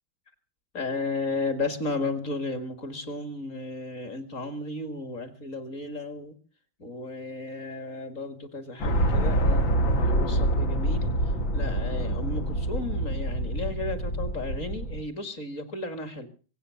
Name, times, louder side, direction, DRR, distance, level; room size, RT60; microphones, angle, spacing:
voice 1, 0.7-6.4 6.8-16.3, left 2 dB, 40° left, 9 dB, 2.3 m, -34 dB
sound 1, 8.8-15.0, right 1 dB, 75° left, 2.8 m, -26 dB
24.0 x 8.2 x 6.9 m, 0.40 s
omnidirectional pair, 2.1 m